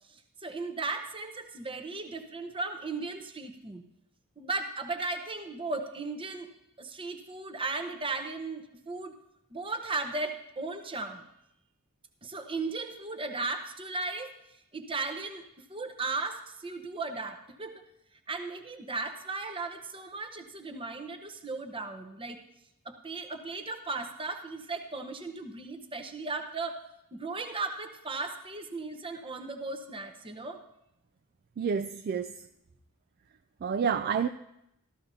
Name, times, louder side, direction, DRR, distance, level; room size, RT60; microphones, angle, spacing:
voice 1, 0.1-3.8 4.4-6.5 6.8-9.1 9.5-11.3 12.2-14.4 14.7-17.8 18.3-22.4 22.8-26.8 27.1-30.6, right 3 dB, 25° right, 0.9 m, -36 dB
voice 2, 31.6-32.4 33.6-34.3, right 6 dB, 45° right, 0.3 m, -29 dB
14.5 x 13.5 x 2.7 m
head